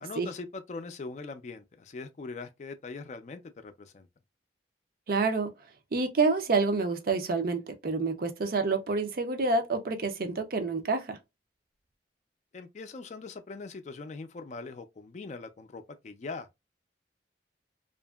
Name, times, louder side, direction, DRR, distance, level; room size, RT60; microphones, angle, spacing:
voice 1, 0.0-4.1 12.5-16.5, left 3 dB, 40° left, 0.4 m, -41 dB
voice 2, 5.1-5.5 5.9-11.2, right 3 dB, 55° right, 0.5 m, -28 dB
2.8 x 2.5 x 2.2 m
head